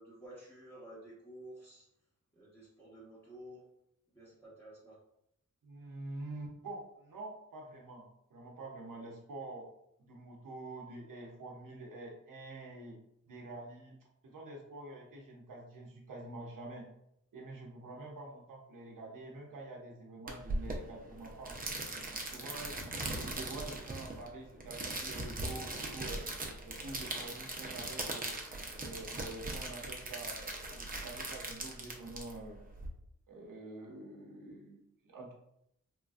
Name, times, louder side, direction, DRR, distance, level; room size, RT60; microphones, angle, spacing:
voice 1, 0.0-1.9 2.3-3.6 4.1-5.0, right 1 dB, 5° left, -10 dB, 1.1 m, -52 dB
voice 2, 5.6-9.7 10.0-13.0 13.3-14.0 14.2-16.9 17.3-21.7 22.3-26.2 26.6-28.4 28.8-32.6 33.3-35.3, right 2 dB, 80° right, -1 dB, 0.7 m, -47 dB
sound 1, 20.3-32.9, right 2 dB, 25° right, 0.6 m, -40 dB
3.1 x 2.4 x 2.3 m, 0.76 s
cardioid pair, 60°, 32 cm